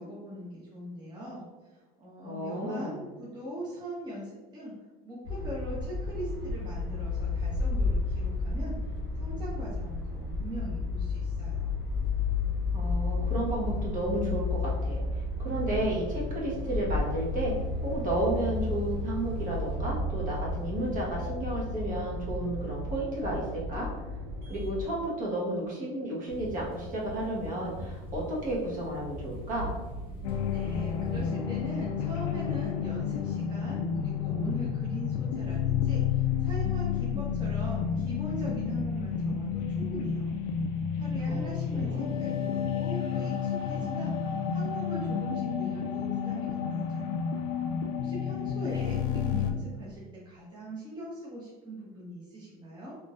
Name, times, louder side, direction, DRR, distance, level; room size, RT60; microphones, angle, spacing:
voice 1, 0.0-1.4 1.7-4.7 5.0-8.8 9.2-11.8 30.5-40.4 40.7-44.1 44.5-47.1 48.0-53.0, right 1 dB, 20° right, -6 dB, 0.9 m, -41 dB
voice 2, 2.2-3.0 12.7-17.5 17.8-23.9 24.5-29.7 41.3-42.1, right 1 dB, 40° right, -4 dB, 1.3 m, -32 dB
sound 1, 5.2-24.8, left 3 dB, 60° right, 1.3 m, -32 dB
sound 2, 26.3-31.3, equal, 25° left, 1.0 m, -41 dB
sound 3, 30.2-49.5, left 7 dB, 70° left, 0.4 m, -30 dB
3.7 x 2.7 x 2.4 m, 1.2 s
supercardioid pair, 95°, 20 cm